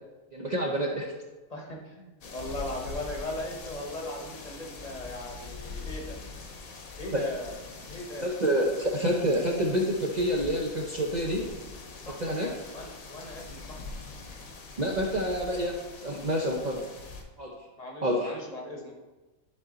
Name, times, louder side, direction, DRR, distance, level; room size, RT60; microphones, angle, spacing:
voice 1, 0.3-1.1 7.1-7.2 8.2-11.4 12.2-12.5 14.8-16.8 17.4-17.5 18.0-18.3, equal, 45° right, -1 dB, 0.6 m, -28 dB
voice 2, 1.5-6.2 7.0-7.6 7.9-8.3 11.9-13.8 17.8-18.9, left 1 dB, 30° left, 0 dB, 1.0 m, -38 dB
sound 1, 2.2-17.2, left 3 dB, 75° left, 1.3 m, -43 dB
11.0 x 3.8 x 3.9 m, 1.2 s
omnidirectional pair, 1.5 m